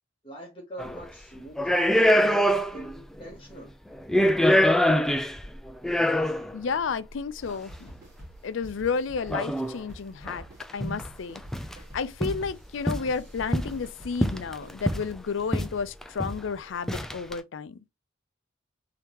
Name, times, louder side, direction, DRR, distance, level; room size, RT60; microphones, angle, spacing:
voice 1, 0.2-3.7, right 1 dB, 25° left, 0.9 m, -43 dB
sound 1, 0.8-1.0 1.6-3.0 3.2-3.3 3.9-6.6 7.5-7.6 9.3-9.8 10.3-10.4 10.6-11.1 11.3-11.8 12.2-12.4 12.9-13.8 14.2-15.1 15.5-15.7 16.0-16.4 16.9-17.3, equal, ahead, 0.3 m, -24 dB
voice 2, 6.5-7.9 8.4-10.4 10.7-11.4 11.9-17.8, left 5 dB, 70° left, 0.4 m, -31 dB
sound 2, 7.4-14.7, right 1 dB, 20° right, 1.6 m, -48 dB
3.5 x 2.8 x 2.9 m
head